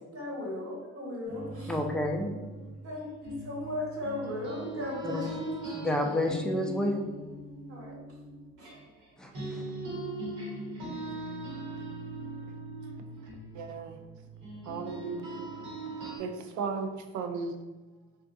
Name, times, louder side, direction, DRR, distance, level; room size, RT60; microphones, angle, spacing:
voice 1, 0.1-1.8 2.8-5.8 7.7-8.0 8.6-8.7, left 1 dB, 50° right, -4 dB, 1.3 m, -37 dB
sound 1, 1.2-9.1 9.3-16.2, right 2 dB, 85° right, 1.2 m, -40 dB
voice 2, 1.7-2.3 5.0-5.3 5.7-7.1 9.2-9.6, left 1 dB, 5° left, 2 dB, 0.4 m, -30 dB
voice 3, 13.5-14.0 14.7-15.5 16.2-16.9 17.1-17.5, right 4 dB, 70° right, 5 dB, 0.5 m, -35 dB
2.5 x 2.3 x 3.6 m, 1.2 s
cardioid pair, 90°, 30 cm